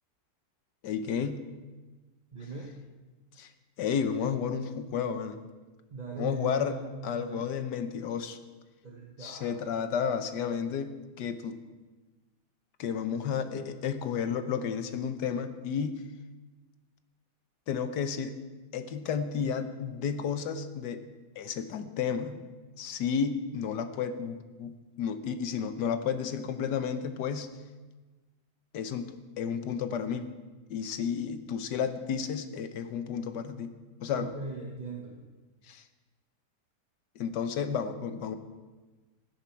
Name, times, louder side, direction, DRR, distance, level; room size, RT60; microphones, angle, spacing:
voice 1, 0.8-1.4 3.4-3.5 3.8-5.4 6.2-6.8 7.0-8.4 9.2-11.6 12.8-16.0 17.7-18.4 18.7-21.0 21.4-22.4 22.8-27.5 28.7-30.3 30.7-33.7 34.0-34.3 35.7-35.8 37.2-38.4, left 7 dB, 80° left, 9 dB, 1.4 m, -32 dB
voice 2, 2.3-2.7 5.9-7.5 8.8-9.6 34.1-35.2, right 3 dB, 30° right, -1 dB, 1.0 m, -40 dB
16.0 x 10.0 x 4.5 m, 1.3 s
omnidirectional pair, 1.8 m